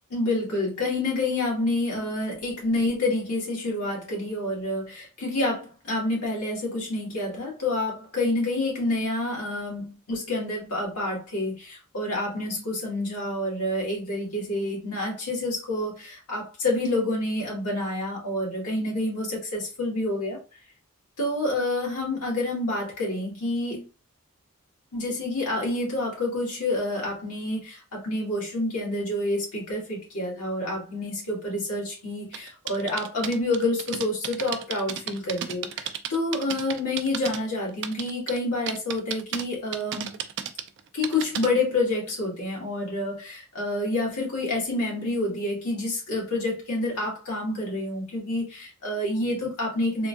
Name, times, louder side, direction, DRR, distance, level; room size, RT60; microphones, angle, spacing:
voice 1, 0.1-20.4 21.2-23.9 24.9-40.2 40.9-50.1, left 2 dB, 90° left, -3 dB, 1.8 m, -28 dB
sound 1, 32.3-37.4 37.7-38.4 38.7-39.4 39.7-41.5, right 9 dB, 55° right, 0.3 m, -33 dB
3.6 x 2.7 x 2.4 m, 0.30 s
head